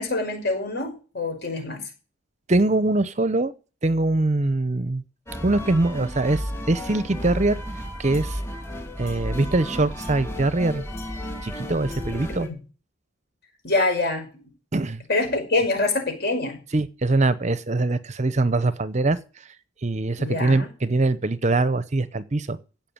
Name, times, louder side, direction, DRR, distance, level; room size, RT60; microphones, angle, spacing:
voice 1, 0.0-1.9 12.3-12.6 13.6-14.5 15.1-16.6 20.2-20.7, left 2 dB, 50° left, 5.7 m, -25 dB
voice 2, 2.5-3.5 3.8-5.0 5.4-7.6 8.0-8.4 9.0-10.8 11.4-12.5 14.7-15.0 16.7-19.5 19.8-22.6, right 2 dB, 35° right, 0.7 m, -23 dB
sound 1, 5.3-12.5, equal, 15° left, 2.7 m, -33 dB
16.5 x 5.9 x 8.9 m
head